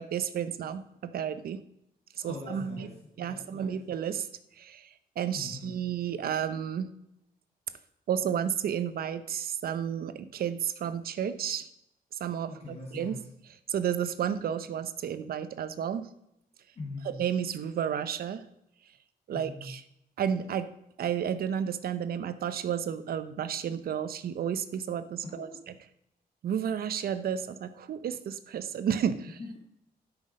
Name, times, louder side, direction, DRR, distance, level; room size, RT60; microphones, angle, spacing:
voice 1, 0.0-1.6 2.2-2.9 3.2-4.3 4.6-4.9 5.2-6.9 8.1-11.7 12.2-13.1 13.7-16.1 17.2-18.4 19.3-19.8 20.2-20.7 21.0-25.5 26.4-29.3, right 8 dB, 75° right, 12 dB, 0.8 m, -32 dB
voice 2, 2.2-3.8 5.3-5.8 12.5-13.3 16.8-17.2 19.3-19.7 25.2-25.6 29.4-29.6, left 3 dB, 40° left, -1 dB, 1.7 m, -42 dB
12.5 x 6.2 x 5.1 m, 0.79 s
wide cardioid pair, 155°, 16 cm